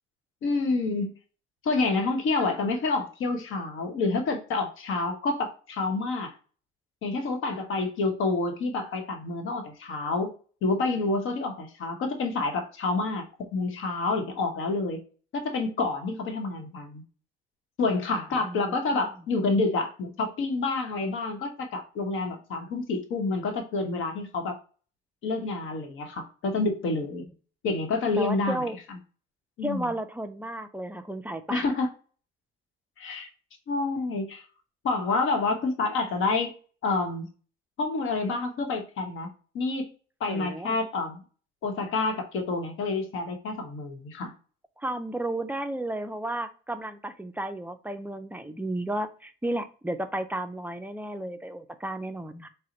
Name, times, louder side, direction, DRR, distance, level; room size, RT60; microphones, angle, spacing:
voice 1, 0.4-1.1 1.6-6.3 7.0-10.3 10.6-13.3 13.5-15.0 15.3-17.0 17.8-24.6 25.2-27.2 27.6-29.0 29.6-29.9 31.5-31.9 33.0-33.3 33.7-34.4 34.8-36.6 36.8-37.3 37.8-39.9 40.2-41.2 41.6-44.3, left 3 dB, 70° left, 4 dB, 0.9 m, -28 dB
voice 2, 18.4-19.1 28.2-28.8 29.6-31.6 40.3-40.8 44.8-52.5, right 1 dB, 10° right, 9 dB, 0.4 m, -33 dB
4.0 x 2.1 x 3.8 m, 0.39 s
cardioid pair, 90°, 21 cm